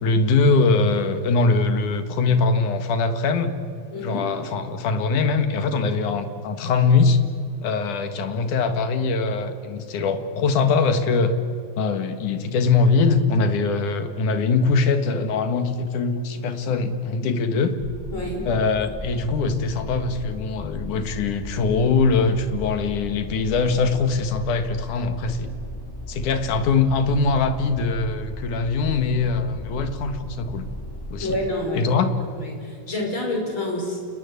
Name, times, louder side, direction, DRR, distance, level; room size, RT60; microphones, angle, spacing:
voice 1, 0.0-3.5 4.0-7.2 7.6-11.3 11.8-17.8 18.5-25.5 26.1-30.7 31.1-31.4 31.7-32.1, left 4 dB, 70° left, 8 dB, 3.0 m, -22 dB
voice 2, 3.9-4.3 5.9-6.1 18.1-18.4 31.2-32.0 32.3-34.0, left 1 dB, 35° left, 1 dB, 6.2 m, -28 dB
sound 1, 17.8-31.5, equal, 5° left, 3.0 m, -36 dB
29.0 x 20.0 x 8.4 m, 2.3 s
omnidirectional pair, 3.9 m